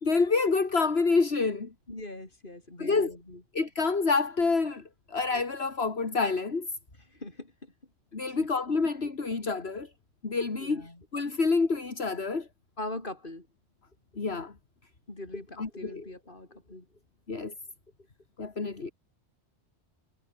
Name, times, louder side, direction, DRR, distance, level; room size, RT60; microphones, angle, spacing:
voice 1, 0.0-1.7 2.8-3.2 3.5-6.7 8.1-9.9 10.2-12.5 14.2-14.5 15.6-16.0 17.3-17.5 18.4-18.9, left 4 dB, 70° left, 2.5 m, -28 dB
voice 2, 1.9-3.4 7.2-7.5 8.4-8.5 10.6-11.0 12.8-13.5 15.1-16.8, left 2 dB, 50° left, 4.7 m, -41 dB
omnidirectional pair, 1.1 m